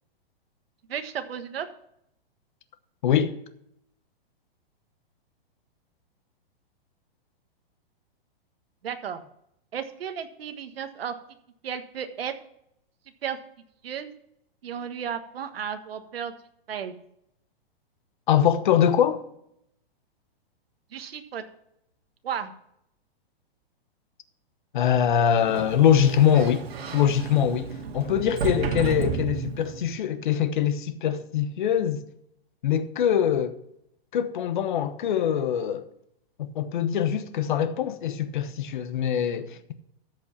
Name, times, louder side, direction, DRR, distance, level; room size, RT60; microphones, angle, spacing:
voice 1, 0.9-1.7 8.8-9.2 9.7-11.1 11.6-12.3 13.2-13.4 13.8-14.1 14.6-16.3 16.7-16.9 20.9-21.4 22.2-22.5, right 8 dB, 75° right, 1.4 m, -33 dB
voice 2, 3.0-3.3 18.3-19.2 24.7-26.7 26.9-32.0 32.6-33.6 34.1-35.9 36.4-39.7, left 9 dB, 50° left, 1.0 m, -23 dB
Sliding door, 25.2-29.9, right 5 dB, 90° right, 2.1 m, -32 dB
13.5 x 5.4 x 5.8 m
hypercardioid pair, 175°, 30 cm